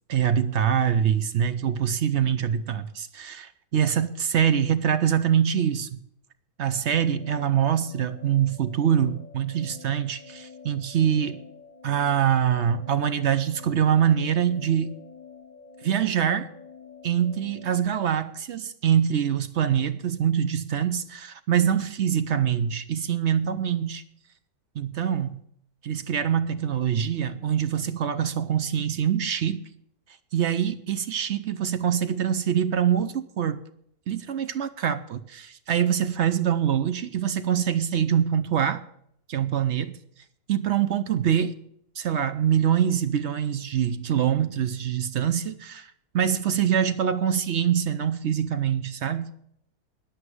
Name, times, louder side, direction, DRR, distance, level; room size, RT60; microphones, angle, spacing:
voice 1, 0.1-6.0 6.6-11.4 11.8-14.9 15.8-16.5 17.0-24.0 24.7-25.4 25.8-29.7 30.3-33.6 34.1-38.8 39.3-40.0 40.5-41.5 42.0-49.3, right 9 dB, 60° right, 0.7 m, -24 dB
sound 1, 6.9-17.9, left 5 dB, 25° left, 1.6 m, -48 dB
9.9 x 8.0 x 9.6 m
omnidirectional pair, 1.8 m